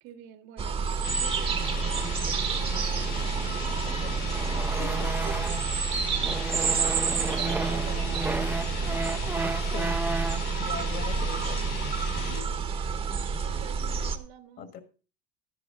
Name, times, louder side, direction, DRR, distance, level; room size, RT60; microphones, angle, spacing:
voice 1, 0.0-4.3 4.9-5.9 6.5-6.8 7.1-9.5 12.1-12.6 13.4-14.7, right 11 dB, 65° right, 1.7 m, -47 dB
sound 1, 0.6-14.2, right 5 dB, 25° right, 1.1 m, -29 dB
sound 2, 1.0-12.5, left 6 dB, 70° left, 3.5 m, -38 dB
sound 3, 1.6-5.8 6.2-10.5, right 3 dB, 10° right, 0.6 m, -35 dB
voice 2, 3.7-5.1 6.4-6.6 9.7-10.0 10.6-11.7 14.6-14.8, left 7 dB, 45° left, 1.8 m, -42 dB
12.5 x 11.0 x 3.7 m
cardioid pair, 145°, 21 cm